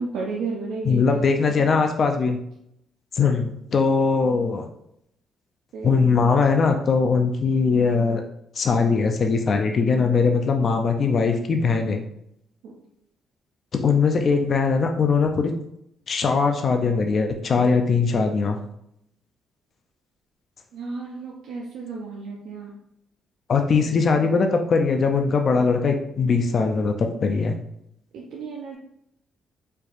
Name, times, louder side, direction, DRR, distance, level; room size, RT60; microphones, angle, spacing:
voice 1, 0.0-1.8 5.7-5.9 12.6-12.7 20.7-22.7 28.1-28.8, right 4 dB, 80° right, -2 dB, 0.5 m, -33 dB
voice 2, 0.9-2.4 3.1-4.6 5.8-8.2 8.6-12.0 13.7-15.5 16.1-18.6 23.5-27.6, left 4 dB, 50° left, 4 dB, 0.4 m, -21 dB
4.4 x 2.6 x 2.4 m, 0.76 s
cardioid pair, 90°, 0 cm